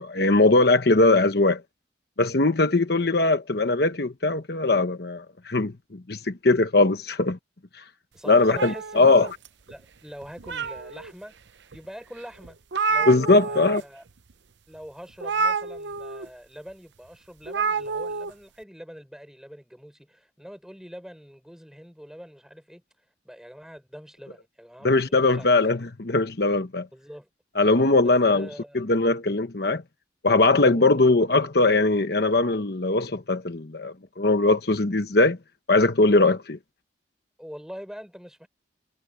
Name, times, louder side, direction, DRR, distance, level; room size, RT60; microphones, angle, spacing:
voice 1, 0.0-1.6 2.2-7.4 8.3-9.3 13.1-13.8 24.8-26.9 27.6-28.5 28.7-29.8 30.2-35.4 35.7-36.6, left 2 dB, 55° left, 1.1 m, -20 dB
voice 2, 8.1-9.3 9.7-11.4 11.7-12.6 12.9-14.0 14.7-22.8 23.2-25.5 26.9-27.3 28.0-28.8 30.7-31.1 37.4-38.5, equal, 5° right, 4.5 m, -43 dB
sound 1, 8.5-9.7 10.2-11.1 11.7-11.8 12.2-12.3 12.4-13.8 14.1-14.3 15.2-16.3 17.5-18.3, right 4 dB, 75° right, 0.8 m, -28 dB
head